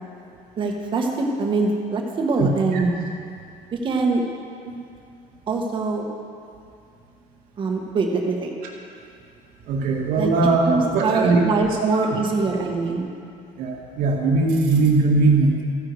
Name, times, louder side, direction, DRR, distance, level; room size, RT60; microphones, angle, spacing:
voice 1, 0.6-2.9 3.7-4.2 5.5-6.0 7.6-8.5 10.2-10.3 10.6-13.1, right 3 dB, 35° right, 1 dB, 1.5 m, -23 dB
voice 2, 2.4-2.8 4.7-4.8 9.7-11.4 11.9-12.1 13.6-15.6, right 3 dB, 70° right, -1 dB, 2.1 m, -20 dB
14.5 x 10.0 x 4.8 m, 2.4 s
cardioid pair, 160°, 15 cm